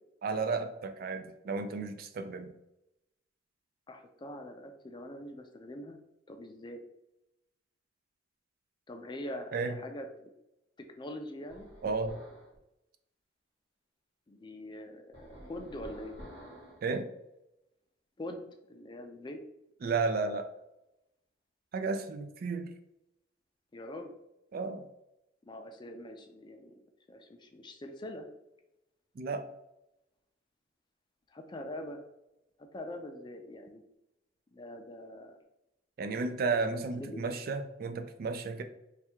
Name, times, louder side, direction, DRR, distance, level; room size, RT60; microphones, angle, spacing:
voice 1, 0.2-2.5 9.5-9.7 11.8-12.2 16.8-17.1 19.8-20.5 21.7-22.7 24.5-24.9 29.2-29.5 36.0-38.6, right 4 dB, 50° right, 8 dB, 0.4 m, -33 dB
voice 2, 3.9-6.0 6.3-6.8 8.9-10.3 10.8-11.7 14.3-16.2 18.2-19.4 23.7-24.1 25.4-26.8 27.1-28.3 31.3-32.0 32.6-33.8 34.5-35.4 37.0-37.2, left 1 dB, 25° left, 5 dB, 0.4 m, -43 dB
sound 1, 11.5-12.6 15.1-16.9, equal, 70° right, 1.4 m, -49 dB
3.3 x 2.3 x 4.4 m, 0.88 s
head